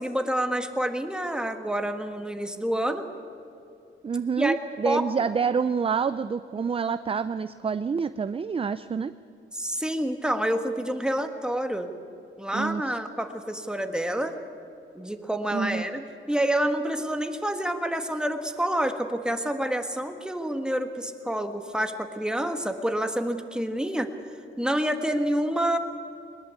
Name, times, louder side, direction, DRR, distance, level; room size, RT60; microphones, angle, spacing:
voice 1, 0.0-3.1 4.4-4.6 4.8-5.0 9.5-11.9 12.4-14.4 14.9-16.0 16.3-24.1 24.6-25.8, right 1 dB, 5° right, 6 dB, 1.7 m, -28 dB
voice 2, 4.0-9.1 12.5-13.0 15.5-15.9, right 6 dB, 30° right, 13 dB, 0.5 m, -27 dB
21.5 x 20.5 x 8.4 m, 2.6 s
wide cardioid pair, 115°, 20 cm